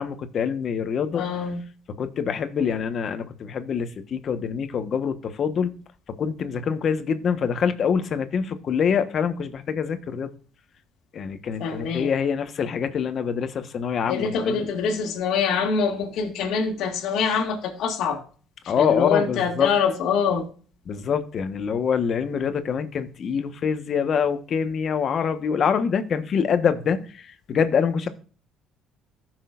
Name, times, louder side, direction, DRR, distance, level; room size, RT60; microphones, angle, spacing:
voice 1, 0.0-1.2 1.9-5.7 6.2-10.3 11.1-14.7 18.7-19.7 20.9-28.1, left 7 dB, 50° left, 1.2 m, -25 dB
voice 2, 1.1-1.6 11.6-12.1 14.1-18.2 18.8-20.4, left 6 dB, 70° left, 2.0 m, -24 dB
15.0 x 6.2 x 2.5 m
cardioid pair, 100°, 0 cm